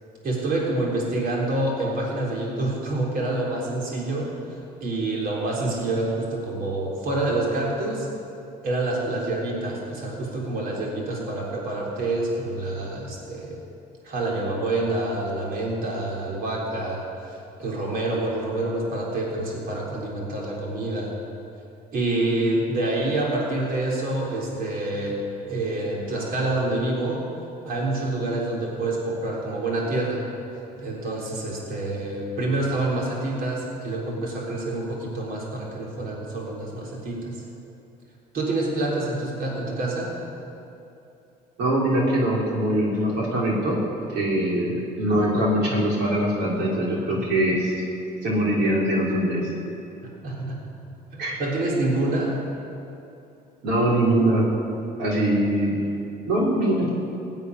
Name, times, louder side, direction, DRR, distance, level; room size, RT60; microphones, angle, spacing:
voice 1, 0.2-8.1 8.6-13.6 14.0-21.1 21.9-25.2 25.5-27.3 27.6-30.3 30.8-37.4 38.3-40.1 50.2-50.6 51.1-52.4, right 2 dB, 60° right, -3 dB, 3.8 m, -27 dB
voice 2, 41.6-43.8 44.1-44.7 45.0-47.7 48.2-49.5 51.2-51.4 53.6-54.4 55.0-55.8 56.3-56.9, right 1 dB, 85° right, -4 dB, 3.8 m, -22 dB
17.0 x 8.2 x 9.8 m, 2.8 s
cardioid pair, 110°, 17 cm